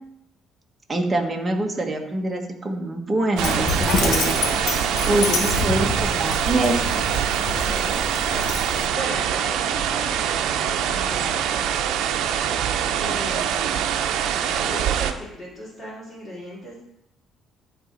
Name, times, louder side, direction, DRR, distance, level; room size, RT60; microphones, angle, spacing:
voice 1, 0.9-7.0, right 2 dB, 15° right, 1 dB, 1.3 m, -25 dB
Dog, 3.4-8.9, left 4 dB, 65° left, 1.5 m, -27 dB
sound 1, 3.4-15.1, right 9 dB, 80° right, 0.6 m, -24 dB
voice 2, 4.7-5.3 7.3-8.1 8.6-11.7 13.0-13.8 14.6-16.7, equal, 25° left, -10 dB, 3.2 m, -37 dB
11.0 x 4.2 x 5.1 m, 0.82 s
cardioid pair, 135°, 0 cm